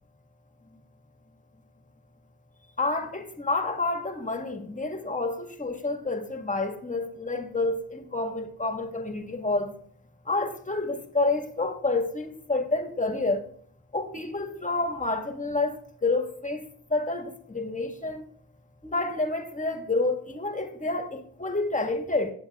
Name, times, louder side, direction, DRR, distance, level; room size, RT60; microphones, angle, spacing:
voice 1, 2.8-9.7 10.2-13.4 13.9-15.7 16.0-16.6 16.9-18.2 18.8-22.3, left 3 dB, 20° left, 1.8 m, -29 dB
17.5 x 7.5 x 2.4 m
supercardioid pair, 60°, 39 cm